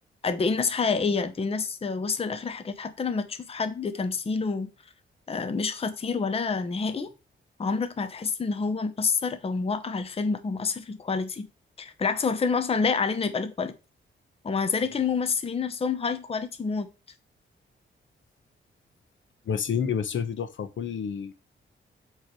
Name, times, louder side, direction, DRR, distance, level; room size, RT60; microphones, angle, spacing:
voice 1, 0.2-4.7 5.3-7.1 7.6-11.5 11.8-13.7 14.4-16.9, left 5 dB, 30° left, 0.7 m, -28 dB
voice 2, 19.5-21.3, left 7 dB, 75° left, 0.8 m, -29 dB
7.6 x 3.1 x 4.6 m
wide cardioid pair, 115°, 20 cm